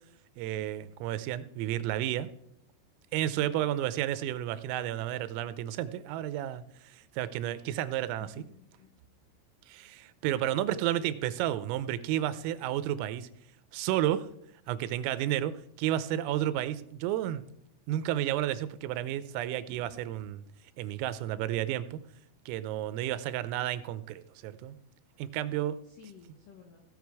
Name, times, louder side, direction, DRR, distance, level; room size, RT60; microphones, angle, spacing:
voice 1, 0.4-2.3 3.1-8.4 9.7-13.3 13.7-14.3 14.7-17.5 17.9-20.4 20.8-22.0 22.5-24.8 25.2-25.8, right 12 dB, 90° right, 14 dB, 3.3 m, -32 dB
voice 2, 3.4-3.7 8.2-8.9 10.3-10.8 25.8-26.8, left 7 dB, 85° left, 3 dB, 1.9 m, -53 dB
17.0 x 6.7 x 4.7 m, 0.73 s
omnidirectional pair, 5.8 m